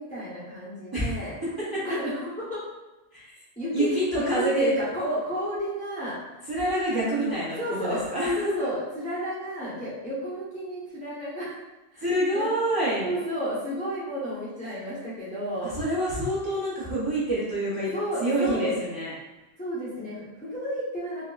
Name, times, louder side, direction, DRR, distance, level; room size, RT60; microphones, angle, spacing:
voice 1, 0.0-1.4 1.8-2.6 3.6-6.5 6.9-8.0 8.4-11.6 11.9-12.1 12.3-12.5 13.0-15.7 17.9-18.8 19.6-21.2, equal, 10° left, -9 dB, 0.8 m, -32 dB
voice 2, 3.7-4.7 6.5-8.7 12.0-13.1 15.6-17.9 18.2-19.1, right 1 dB, 25° right, -9 dB, 0.9 m, -27 dB
5.0 x 2.1 x 2.4 m, 1.1 s
omnidirectional pair, 1.1 m